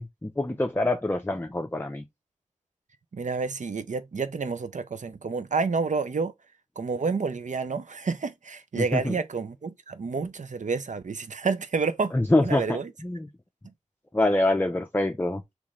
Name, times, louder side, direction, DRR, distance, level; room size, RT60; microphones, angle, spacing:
voice 1, 0.0-2.0 8.8-9.2 12.1-13.3 14.1-15.4, left 2 dB, 15° left, 0.5 m, -25 dB
voice 2, 3.1-6.3 6.8-12.1 12.4-12.9, right 4 dB, 80° right, 0.5 m, -29 dB
3.2 x 3.1 x 3.7 m
wide cardioid pair, 60°, 13 cm